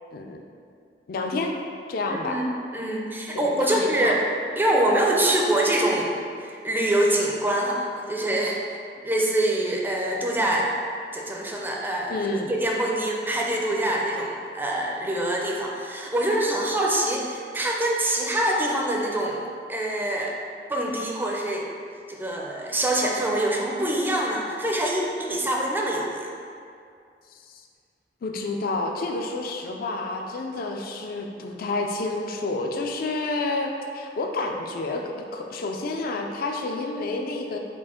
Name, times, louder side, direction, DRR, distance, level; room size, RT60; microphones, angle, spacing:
voice 1, 1.1-1.5 1.9-2.4 3.3-4.2 12.1-12.5 28.2-37.6, left 2 dB, 55° left, 3 dB, 0.4 m, -29 dB
voice 2, 2.1-4.2 4.6-8.6 9.0-10.7 11.1-19.4 19.7-20.4 20.7-21.7 22.1-26.3, right 1 dB, 10° right, -2 dB, 0.4 m, -25 dB
4.5 x 2.5 x 4.2 m, 2.4 s
head